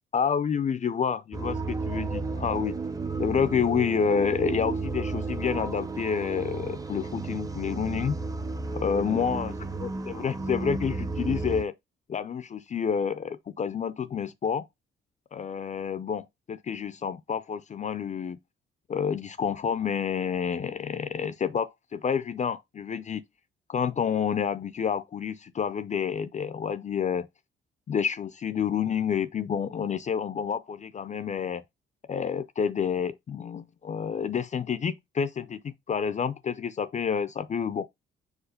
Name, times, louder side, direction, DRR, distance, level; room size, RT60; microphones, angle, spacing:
voice 1, 0.1-2.8 3.2-8.2 8.7-9.5 9.8-11.7 12.1-14.7 15.3-18.4 18.9-23.2 23.7-27.3 27.9-31.6 32.1-37.9, left 7 dB, 35° left, 0.5 m, -29 dB
sound 1, 1.3-11.6, right 3 dB, 15° right, 0.7 m, -33 dB
4.9 x 4.0 x 5.1 m
cardioid pair, 90°, 20 cm